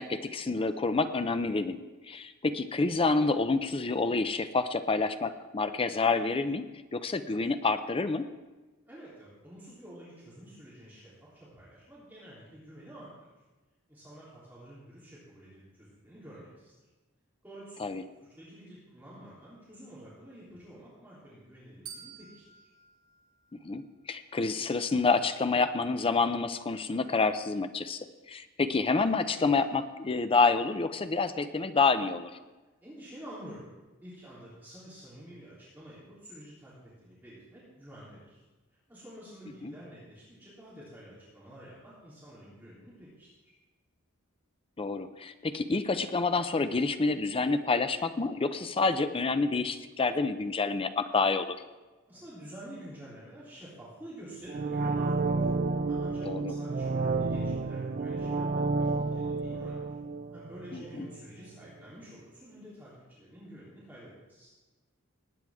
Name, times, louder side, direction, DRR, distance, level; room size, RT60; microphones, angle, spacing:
voice 1, 0.0-1.8 2.1-6.6 6.9-8.2 17.8-18.0 23.5-32.3 39.6-39.7 44.8-51.6 56.2-56.5 60.7-61.1, left 3 dB, 25° left, 10 dB, 0.5 m, -28 dB
voice 2, 8.8-13.1 13.9-16.7 17.4-17.9 18.4-22.4 32.8-33.7 34.0-38.4 38.9-43.5 52.1-55.5 55.9-59.8 60.3-64.5, equal, 10° right, -9 dB, 3.3 m, -49 dB
sound 1, 21.9-24.1, right 7 dB, 90° right, 2.9 m, -50 dB
sound 2, 54.5-61.3 61.6-61.7, right 3 dB, 40° right, 0.5 m, -31 dB
19.5 x 9.3 x 3.6 m, 1.2 s
head